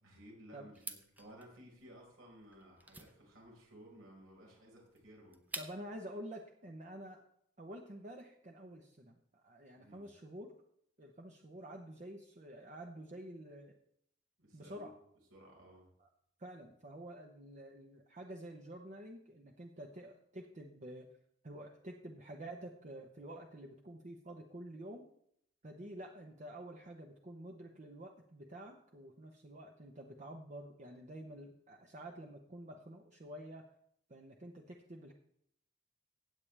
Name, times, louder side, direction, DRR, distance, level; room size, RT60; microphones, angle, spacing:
voice 1, 0.0-5.6 9.7-10.1 14.4-14.9 15.3-15.9, equal, 90° right, -2 dB, 4.8 m, -57 dB
sound 1, 0.7-6.0, right 2 dB, 10° right, 0.8 m, -50 dB
voice 2, 5.6-7.2 7.6-10.5 11.0-13.8 14.5-14.9 16.0-16.1 16.4-21.1 21.4-25.1 25.6-33.7 34.1-35.1, right 1 dB, 40° right, 2 dB, 0.9 m, -49 dB
16.0 x 8.6 x 3.4 m, 0.70 s
head